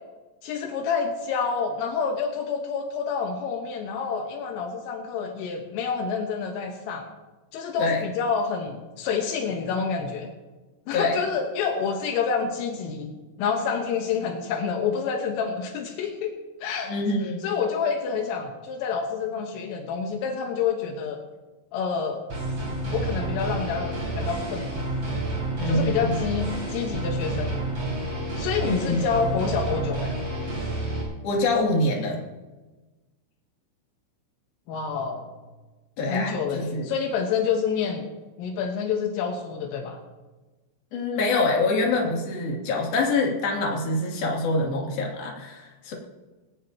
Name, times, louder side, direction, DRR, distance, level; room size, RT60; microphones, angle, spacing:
voice 1, 0.4-7.1 7.5-10.3 10.9-16.3 16.6-16.9 17.4-21.2 21.7-22.2 22.9-24.9 25.7-27.6 28.4-30.1 34.7-35.3 36.1-38.0 38.4-40.0, left 6 dB, 80° left, 2 dB, 3.9 m, -28 dB
voice 2, 16.9-17.4 25.6-26.2 28.6-29.0 31.2-32.2 36.0-36.9 40.9-45.9, left 2 dB, 50° left, -2 dB, 4.3 m, -25 dB
sound 1, 22.3-31.0, right 2 dB, 25° right, 6.6 m, -29 dB
20.5 x 18.0 x 3.0 m, 1.2 s
omnidirectional pair, 5.9 m